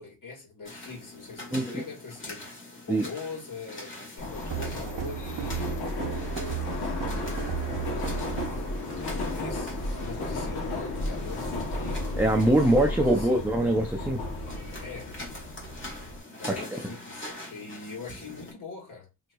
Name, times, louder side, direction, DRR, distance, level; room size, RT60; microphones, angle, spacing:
voice 1, 0.0-5.9 7.6-8.7 9.0-12.0 12.7-13.5 14.8-15.1 16.2-19.1, left 4 dB, 60° left, 1.5 m, -42 dB
sound 1, 0.6-18.5, left 1 dB, 35° left, 1.1 m, -44 dB
Subway metro underground, 4.2-16.2, left 2 dB, 80° left, 1.0 m, -33 dB
sound 2, 4.5-8.7, right 10 dB, 60° right, 0.6 m, -35 dB
voice 2, 12.2-14.2, right 1 dB, 5° right, 0.4 m, -23 dB
3.8 x 2.8 x 2.3 m
wide cardioid pair, 180°, 36 cm